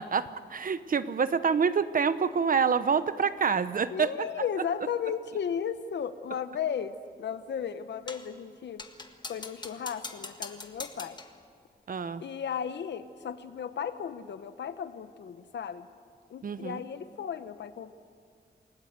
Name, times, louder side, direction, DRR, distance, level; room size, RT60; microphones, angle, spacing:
voice 1, 0.0-4.3 11.9-12.2 16.4-16.8, right 6 dB, 50° right, 13 dB, 0.9 m, -27 dB
voice 2, 3.9-8.9 9.3-11.2 12.2-15.9 16.3-17.9, left 7 dB, 80° left, 11 dB, 1.0 m, -35 dB
sound 1, 8.1-8.4 8.8-11.4, left 3 dB, 25° left, 1.6 m, -42 dB
29.0 x 19.0 x 8.1 m, 2.2 s
wide cardioid pair, 120°, 18 cm